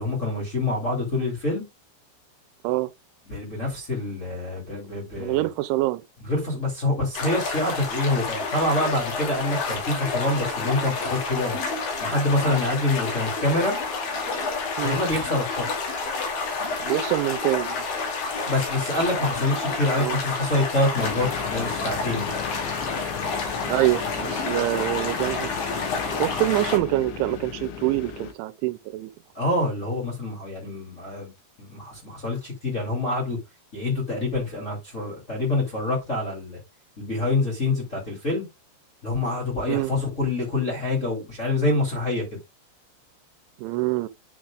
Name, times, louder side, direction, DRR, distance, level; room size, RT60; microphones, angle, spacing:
voice 1, 0.0-1.6 3.3-5.5 6.2-11.6 12.0-13.7 14.8-15.7 18.5-22.3 29.3-31.3 31.6-33.4 33.7-36.6 37.0-38.4 39.0-42.2, left 2 dB, 20° left, 2.4 m, -26 dB
voice 2, 5.2-6.0 14.8-15.0 16.8-17.9 19.9-20.2 23.7-25.5 26.2-29.1 39.7-39.9 43.6-44.1, right 18 dB, 85° right, 2.9 m, -25 dB
sound 1, 7.1-26.8, left 4 dB, 55° left, 3.8 m, -29 dB
sound 2, 21.0-28.3, left 9 dB, 75° left, 3.5 m, -35 dB
10.0 x 6.4 x 2.4 m
omnidirectional pair, 5.4 m